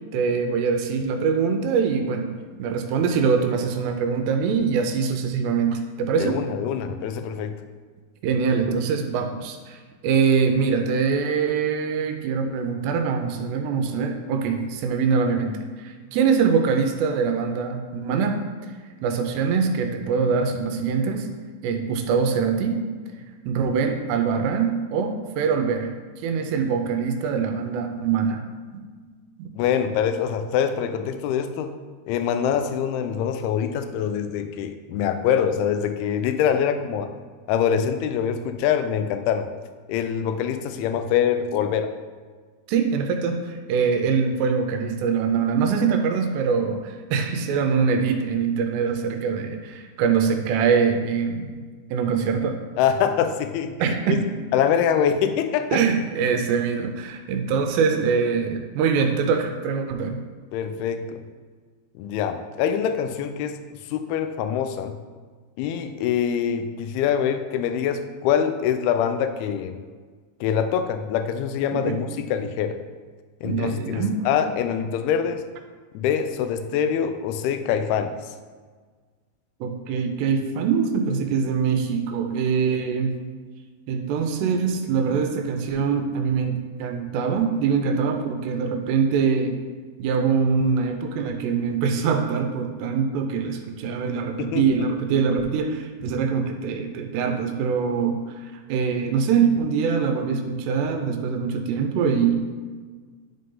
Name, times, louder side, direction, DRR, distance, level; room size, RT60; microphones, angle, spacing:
voice 1, 0.1-2.3 2.6-6.4 8.2-9.8 10.0-18.4 19.0-21.3 21.6-22.8 23.5-25.9 26.2-28.4 29.4-29.5 42.7-51.5 51.9-52.6 53.8-54.2 55.7-60.2 71.7-72.0 73.4-74.3 79.6-83.2 83.9-89.6 90.0-102.4, right 6 dB, 85° right, 5 dB, 2.7 m, -23 dB
voice 2, 6.2-7.6 29.6-31.7 32.1-37.1 37.5-39.5 39.9-41.9 52.8-54.2 54.5-55.8 60.5-61.2 62.0-63.6 63.9-65.0 65.6-69.8 70.4-72.8 73.4-75.4 75.9-78.2 94.4-94.6, left 8 dB, 80° left, 8 dB, 2.3 m, -24 dB
11.0 x 3.9 x 3.8 m, 1.5 s
omnidirectional pair, 4.9 m